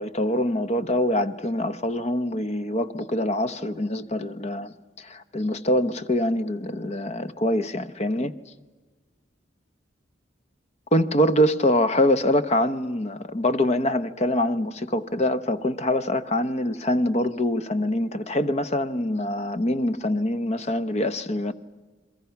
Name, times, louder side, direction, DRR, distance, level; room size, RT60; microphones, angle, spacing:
voice 1, 0.0-8.3 10.9-21.5, left 1 dB, 35° left, 0.8 m, -24 dB
30.0 x 22.0 x 5.8 m
head